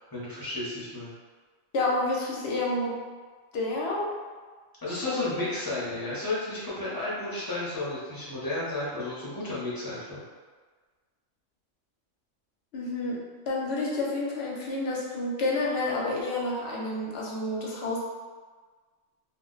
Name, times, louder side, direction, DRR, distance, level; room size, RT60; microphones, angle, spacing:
voice 1, 0.1-1.1 4.8-10.2, left 2 dB, 20° left, -8 dB, 0.7 m, -33 dB
voice 2, 1.7-2.9 3.5-4.1 5.0-5.4 12.7-13.2 13.5-18.0, left 2 dB, 60° left, -3 dB, 0.8 m, -29 dB
2.4 x 2.1 x 3.8 m, 1.5 s
omnidirectional pair, 1.4 m